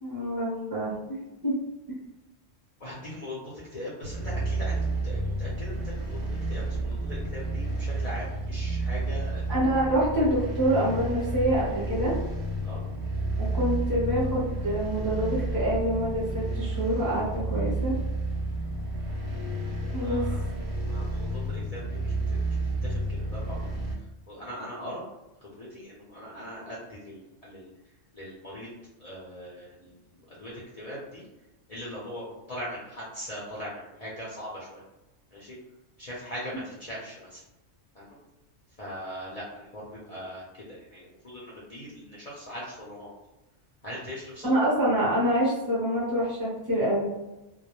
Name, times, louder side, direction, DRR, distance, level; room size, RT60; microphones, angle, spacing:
voice 1, 0.0-0.9 1.4-1.5 9.5-12.1 13.4-17.2 17.5-17.9 19.9-20.2 44.4-47.1, right 1 dB, 30° right, -8 dB, 0.4 m, -26 dB
voice 2, 2.8-9.4 12.6-12.8 19.9-20.4 20.9-23.7 24.0-25.0 25.4-28.7 29.0-31.3 31.7-34.8 35.3-35.6 36.0-37.4 37.9-38.2 38.8-43.1 43.8-44.5, equal, 60° left, -7 dB, 0.4 m, -41 dB
sound 1, 4.0-23.9, right 2 dB, 65° right, 0.7 m, -31 dB
2.2 x 2.0 x 2.9 m, 1.0 s
omnidirectional pair, 1.3 m